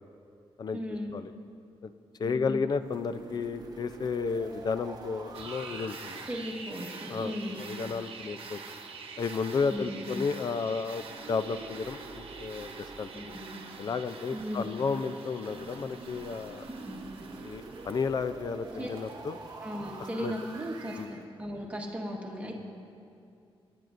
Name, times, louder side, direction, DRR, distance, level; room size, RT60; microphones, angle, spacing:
voice 1, 0.7-1.1 2.2-2.6 6.3-7.7 9.7-10.0 13.1-13.6 14.3-14.7 16.8-17.0 18.8-18.9 19.5-22.6, equal, 15° right, -2 dB, 1.4 m, -37 dB
voice 2, 2.2-6.2 7.1-8.6 9.2-13.1 13.8-16.6 17.4-19.4 20.2-20.3 20.9-21.1, left 5 dB, 45° left, 12 dB, 0.4 m, -32 dB
sound 1, 2.8-7.9 11.0-14.8 15.5-21.2, right 3 dB, 40° right, 0.9 m, -47 dB
sound 2, 5.3-21.1, right 4 dB, 65° right, 1.0 m, -46 dB
23.5 x 10.5 x 2.5 m, 2.5 s
wide cardioid pair, 170°, 10 cm